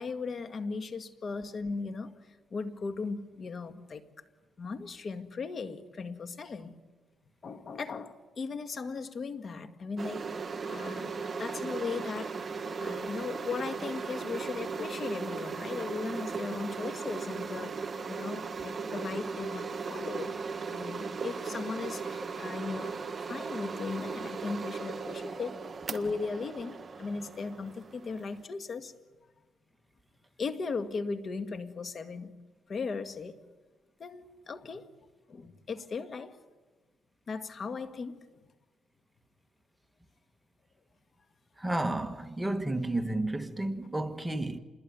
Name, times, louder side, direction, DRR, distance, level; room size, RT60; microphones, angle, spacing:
voice 1, 0.0-2.1 2.5-4.0 4.6-6.8 7.4-10.3 10.7-11.1 11.4-12.4 12.8-20.3 20.7-23.0 23.3-25.6 25.9-28.9 30.4-32.3 32.7-33.4 34.0-34.9 35.3-36.4 37.3-38.4, left 4 dB, 45° left, 1.9 m, -37 dB
sound 1, 10.0-28.4, right 5 dB, 35° right, 1.6 m, -37 dB
voice 2, 41.6-44.6, right 1 dB, 10° right, 1.5 m, -31 dB
28.0 x 21.5 x 9.5 m
cardioid pair, 90°, 0 cm